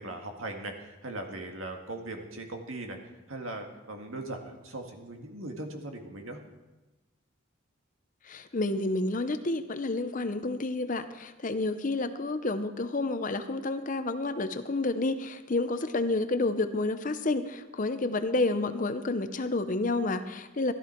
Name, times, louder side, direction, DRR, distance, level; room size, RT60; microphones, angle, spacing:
voice 1, 0.0-3.0 3.3-6.4, right 2 dB, 80° right, 3 dB, 1.9 m, -39 dB
voice 2, 8.3-20.7, left 2 dB, 40° left, 10 dB, 0.7 m, -30 dB
14.5 x 12.5 x 4.5 m, 1.1 s
head